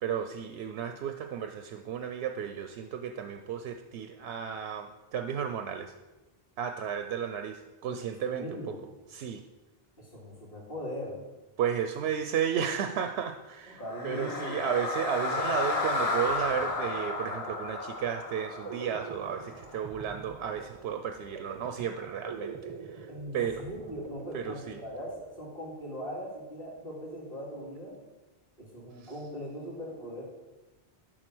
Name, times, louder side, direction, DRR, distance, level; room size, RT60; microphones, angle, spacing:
voice 1, 0.0-5.9 6.6-8.8 9.1-9.4 11.6-23.1 23.3-23.6 24.3-24.8 29.0-29.1, right 8 dB, 90° right, 7 dB, 0.8 m, -33 dB
voice 2, 7.9-8.8 10.0-11.2 13.7-14.6 23.1-28.0 28.6-30.2, equal, 60° left, -4 dB, 2.6 m, -40 dB
sound 1, 13.8-20.0, left 3 dB, 35° left, 0.9 m, -33 dB
sound 2, 15.1-15.2 15.4-26.0, right 5 dB, 40° right, 0.4 m, -46 dB
11.0 x 3.9 x 6.1 m, 1.1 s
omnidirectional pair, 1.1 m